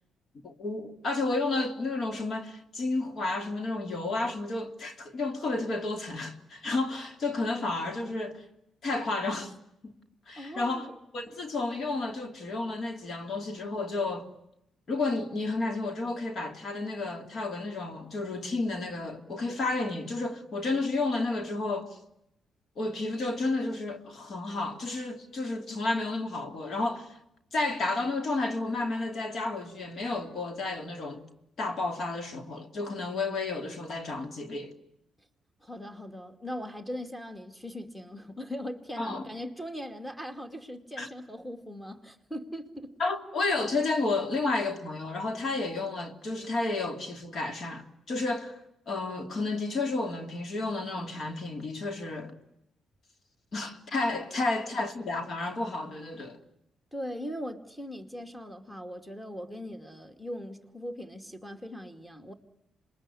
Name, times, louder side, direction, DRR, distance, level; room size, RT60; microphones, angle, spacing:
voice 1, 0.4-8.4 8.8-9.5 9.8-9.9 10.3-10.9 11.1-14.3 14.9-22.0 22.8-27.2 27.5-31.2 31.6-34.7 39.0-39.2 41.0-41.1 43.0-48.6 48.9-52.3 53.5-56.4, left 3 dB, 50° left, 2.8 m, -31 dB
voice 2, 10.4-10.9 35.6-43.0 54.4-54.8 56.9-62.3, equal, 5° left, 2.5 m, -40 dB
27.0 x 22.0 x 10.0 m
cardioid pair, 90°, 0 cm